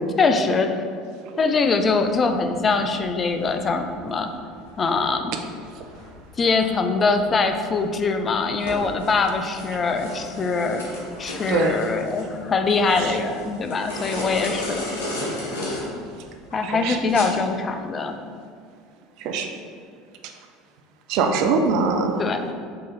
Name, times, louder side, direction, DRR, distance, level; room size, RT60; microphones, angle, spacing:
voice 1, 0.2-0.8 1.4-4.3 4.8-5.3 6.4-10.9 11.2-14.9 16.5-18.2 22.2-22.5, left 4 dB, 30° left, 6 dB, 0.3 m, -23 dB
sound 1, 1.7-17.2, left 1 dB, 70° left, 1.2 m, -35 dB
voice 2, 11.5-11.8 12.9-13.2 16.6-17.0 19.2-19.5 21.1-22.1, right 4 dB, 55° right, 5 dB, 0.4 m, -22 dB
3.7 x 3.1 x 4.1 m, 2.2 s
figure-of-eight pair, 70°, 0 cm